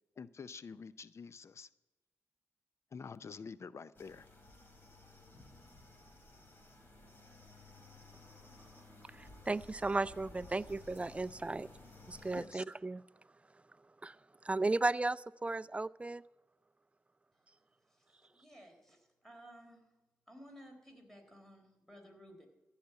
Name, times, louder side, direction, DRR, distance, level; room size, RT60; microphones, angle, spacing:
voice 1, 0.2-1.7 2.9-4.3 12.3-12.6, left 5 dB, 55° left, 16 dB, 0.5 m, -48 dB
sound 1, 3.9-12.4, left 2 dB, 35° left, 4.1 m, -56 dB
voice 2, 9.0-11.7 12.1-13.0 14.0-16.2, right 2 dB, 20° right, 19 dB, 0.4 m, -35 dB
voice 3, 18.3-19.8 20.3-22.5, equal, 5° left, 3 dB, 3.8 m, -56 dB
15.0 x 5.7 x 9.5 m, 1.1 s
supercardioid pair, 50°, 6 cm